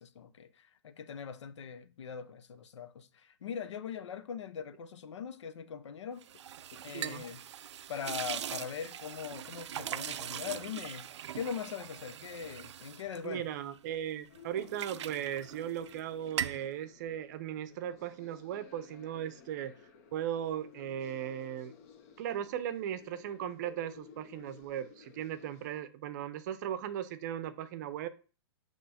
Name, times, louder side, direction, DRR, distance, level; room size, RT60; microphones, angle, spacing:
voice 1, 0.0-6.4 6.7-7.4 7.9-11.1 11.3-13.4, left 7 dB, 80° left, 0.8 m, -41 dB
sound 1, 6.2-14.0 14.3-16.0 16.3-16.7, right 10 dB, 80° right, 0.4 m, -41 dB
voice 2, 13.2-19.7 20.1-21.7 22.2-28.1, right 10 dB, 40° right, 0.6 m, -37 dB
sound 2, 14.3-25.8, left 6 dB, 35° left, 0.9 m, -56 dB
7.5 x 3.1 x 4.3 m
hypercardioid pair, 160°, 15 cm